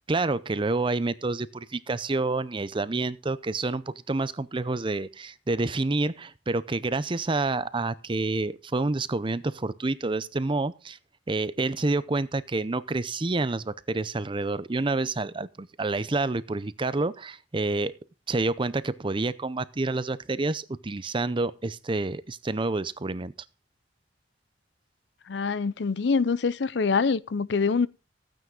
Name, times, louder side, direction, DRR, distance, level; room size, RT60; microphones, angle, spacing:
voice 1, 0.0-11.0 11.3-17.9 18.3-23.3, right 3 dB, 25° right, 0.6 m, -28 dB
voice 2, 25.3-27.9, left 5 dB, 65° left, 0.5 m, -25 dB
15.0 x 9.3 x 3.7 m
head